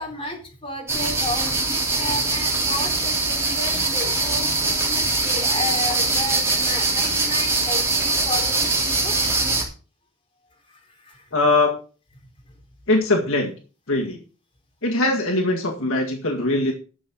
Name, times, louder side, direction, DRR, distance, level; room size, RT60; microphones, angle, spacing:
voice 1, 0.0-9.2 10.7-11.3 12.5-12.6, left 2 dB, 25° left, 1 dB, 3.8 m, -33 dB
sound 1, 0.9-9.6, right 3 dB, 10° right, 3.3 m, -22 dB
voice 2, 11.3-11.8 12.9-13.5 13.9-14.2 14.8-16.7, left 2 dB, 65° left, 1 dB, 2.0 m, -21 dB
11.0 x 7.1 x 6.2 m, 0.37 s
head